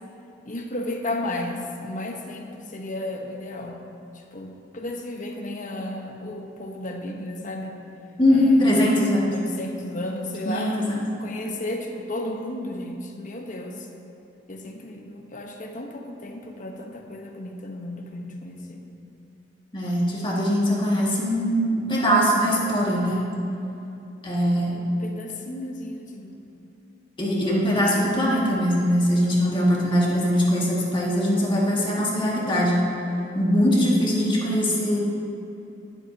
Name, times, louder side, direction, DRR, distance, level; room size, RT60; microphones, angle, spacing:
voice 1, 0.4-3.8 4.1-7.8 8.3-8.9 9.2-10.8 11.2-13.9 14.5-18.8 24.7-26.4, left 1 dB, 45° left, 2 dB, 1.1 m, -34 dB
voice 2, 8.2-9.3 10.5-10.8 19.7-23.2 24.2-24.7 27.2-32.8 33.3-35.0, equal, 25° left, -5 dB, 2.1 m, -21 dB
20.0 x 8.3 x 2.9 m, 2.8 s
head